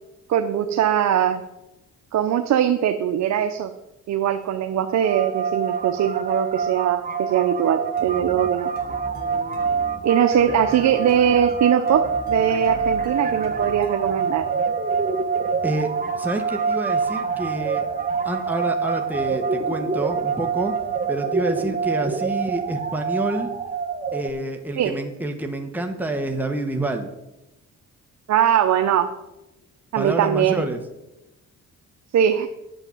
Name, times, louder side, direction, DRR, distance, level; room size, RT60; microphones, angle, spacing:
voice 1, 0.3-1.4 2.1-3.7 4.1-8.7 10.0-14.4 24.8-25.0 28.3-29.1 29.9-30.6 32.1-32.5, right 9 dB, 65° right, 7 dB, 0.8 m, -21 dB
sound 1, 5.0-24.3, right 5 dB, 30° right, 1.3 m, -26 dB
sound 2, 8.0-14.4, left 1 dB, 30° left, 3.2 m, -40 dB
voice 2, 15.6-17.9 18.2-20.7 21.1-23.5 24.1-27.1 29.9-30.8, right 2 dB, 5° right, 4 dB, 1.3 m, -28 dB
8.9 x 7.8 x 7.3 m, 0.96 s
cardioid pair, 90°, 30 cm